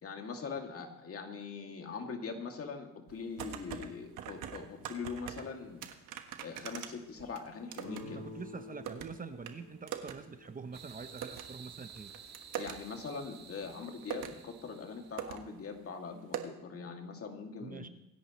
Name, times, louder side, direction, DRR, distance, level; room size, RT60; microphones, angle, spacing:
voice 1, 0.0-5.8 6.4-8.2 12.5-17.8, left 5 dB, 50° left, 3 dB, 2.4 m, -42 dB
sound 1, 3.1-3.9 4.2-5.5 5.8-8.0 8.3-9.1 9.5-9.6 9.9-10.2 10.4-10.5 11.2-11.4 12.0-12.7 13.6-13.7 14.0-14.4 14.9-15.0 15.2-15.4 15.6-15.7 16.3-16.4, right 10 dB, 90° right, 1.3 m, -41 dB
sound 2, 7.8-11.4, left 3 dB, 80° left, 5.9 m, -50 dB
voice 2, 8.0-12.1 17.6-17.9, right 5 dB, 30° right, 10 dB, 0.8 m, -45 dB
sound 3, 10.7-15.3, right 7 dB, 60° right, 1.8 m, -52 dB
24.5 x 11.0 x 3.1 m, 0.87 s
cardioid pair, 90°, 30 cm